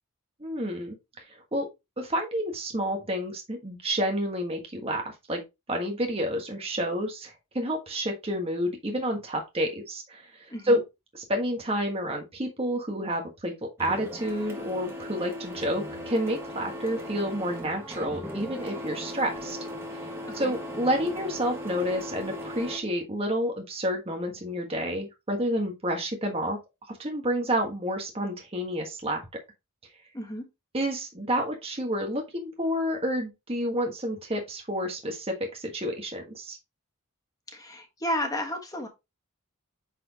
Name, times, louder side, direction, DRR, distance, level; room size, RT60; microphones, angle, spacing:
voice 1, 0.4-1.0 1.5-1.7 2.0-5.4 5.7-10.3 10.6-10.8 11.1-13.5 13.8-19.6 20.3-26.6 27.0-29.2 30.7-36.6, equal, 25° right, 1.5 m, -29 dB
voice 2, 10.5-10.8 20.2-20.6 30.1-30.4 37.5-38.9, equal, 15° left, 1.4 m, -32 dB
Printer, 13.8-22.8, left 1 dB, 10° right, 1.7 m, -38 dB
8.8 x 4.4 x 2.9 m
head